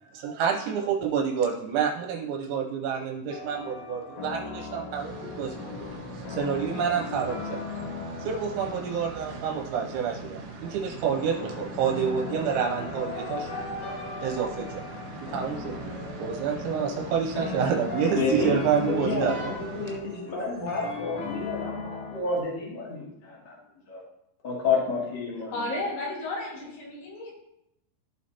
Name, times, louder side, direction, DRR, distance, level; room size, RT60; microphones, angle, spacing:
voice 1, 0.0-5.7 6.1-7.6 8.2-13.5 14.2-14.8 15.1-19.5, right 7 dB, 80° right, 0 dB, 3.2 m, -28 dB
sound 1, 3.3-22.2, left 4 dB, 60° left, 2.2 m, -38 dB
sound 2, 4.9-20.0, right 2 dB, 65° right, 2.3 m, -41 dB
voice 2, 18.1-23.5 23.9-24.0 24.4-25.5, left 4 dB, 35° left, -4 dB, 1.8 m, -30 dB
voice 3, 25.5-27.3, left 2 dB, 75° left, -3 dB, 4.3 m, -33 dB
14.5 x 5.0 x 2.8 m, 0.81 s
omnidirectional pair, 5.4 m